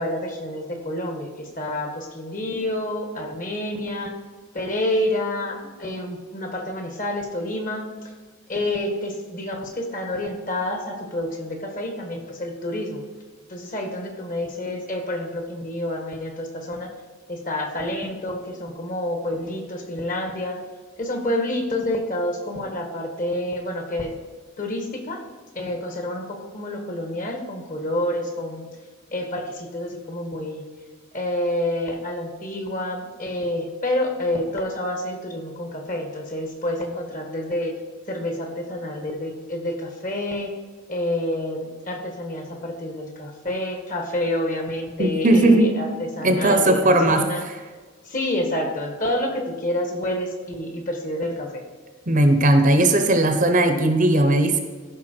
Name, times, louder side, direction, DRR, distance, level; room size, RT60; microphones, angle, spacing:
voice 1, 0.0-4.1 4.5-8.1 8.5-13.0 13.5-16.9 17.3-20.6 21.0-24.1 24.6-25.2 25.5-28.7 29.1-30.6 31.1-37.8 38.1-40.5 40.9-47.4 48.0-51.6, left 1 dB, 40° left, 4 dB, 1.6 m, -28 dB
voice 2, 45.0-45.7 46.2-47.2 52.1-54.6, right 1 dB, 35° right, 6 dB, 0.9 m, -17 dB
14.0 x 5.7 x 4.5 m, 1.4 s
head